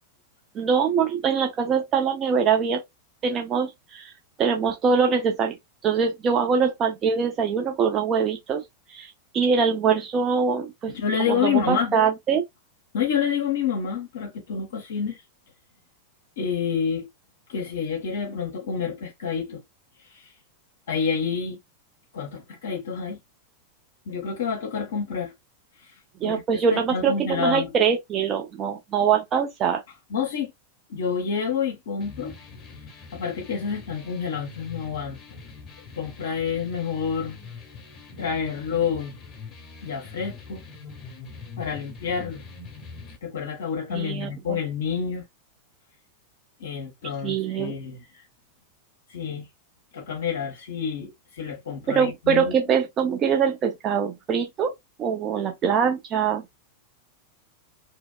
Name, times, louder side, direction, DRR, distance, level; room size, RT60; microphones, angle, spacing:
voice 1, 0.5-2.8 3.2-4.1 4.4-5.6 5.8-12.4 26.2-29.8 43.9-44.6 47.2-47.7 51.9-54.7 55.0-56.4, right 6 dB, 30° right, 0.5 m, -23 dB
voice 2, 10.9-11.9 12.9-15.2 16.4-17.1 17.5-19.6 20.0-20.3 20.9-21.6 22.1-23.2 24.1-25.3 25.8-27.7 30.1-30.5 30.9-32.4 33.1-35.4 36.0-37.4 38.2-39.1 39.8-40.6 41.6-42.4 43.2-45.2 46.6-48.2 49.1-49.5 49.9-52.5, left 6 dB, 60° left, 0.6 m, -28 dB
sound 1, 32.0-43.2, left 4 dB, 30° left, 0.9 m, -43 dB
2.8 x 2.1 x 2.2 m
figure-of-eight pair, 90°, 0 cm